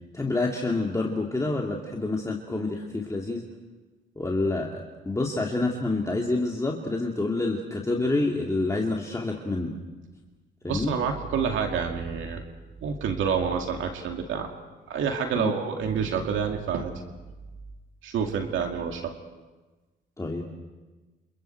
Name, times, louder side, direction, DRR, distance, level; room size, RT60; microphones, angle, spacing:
voice 1, 0.1-3.4 4.2-9.7 10.6-10.9 15.4-15.5 20.2-20.5, left 2 dB, 15° left, -1 dB, 2.4 m, -28 dB
voice 2, 10.7-12.4 12.8-14.5 14.9-16.9 18.0-19.1, right 6 dB, 80° right, 3 dB, 2.3 m, -28 dB
29.0 x 27.5 x 4.6 m, 1.2 s
cardioid pair, 90°, 20 cm